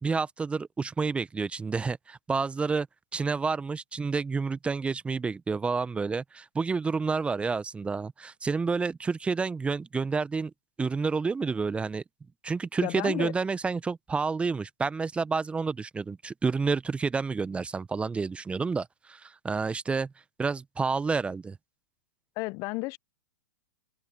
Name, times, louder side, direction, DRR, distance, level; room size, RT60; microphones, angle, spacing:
voice 1, 0.0-2.9 3.1-10.5 10.8-12.0 12.4-20.1 20.4-21.6, right 4 dB, 10° right, 1.0 m, -29 dB
voice 2, 12.8-13.3 22.4-23.0, left 24 dB, 40° left, 1.0 m, -32 dB
open air
figure-of-eight pair, 105°, 9 cm